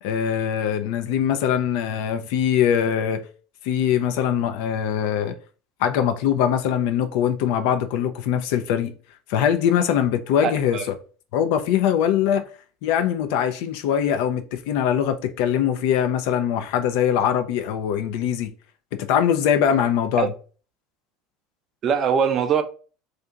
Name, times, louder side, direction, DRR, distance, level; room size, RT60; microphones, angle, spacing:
voice 1, 0.0-3.2 3.6-5.4 5.8-8.9 9.3-10.9 11.3-12.5 12.8-18.5 18.9-20.3, left 9 dB, 70° left, 0.4 m, -22 dB
voice 2, 10.4-10.8 20.2-20.3 21.8-22.6, right 7 dB, 45° right, 0.4 m, -22 dB
2.8 x 2.4 x 3.3 m
hypercardioid pair, 85°, 0 cm